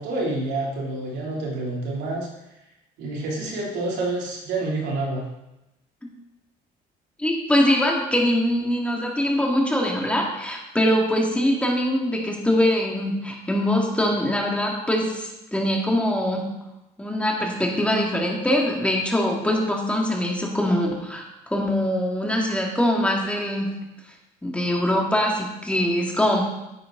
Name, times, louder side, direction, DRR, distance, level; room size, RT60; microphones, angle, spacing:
voice 1, 0.0-2.3 3.0-5.2, right 2 dB, 85° right, -2 dB, 3.1 m, -28 dB
voice 2, 7.2-16.4 17.0-23.7 24.4-26.4, left 1 dB, 5° left, -1 dB, 2.3 m, -23 dB
10.0 x 8.7 x 3.9 m, 0.94 s
cardioid pair, 110°, 17 cm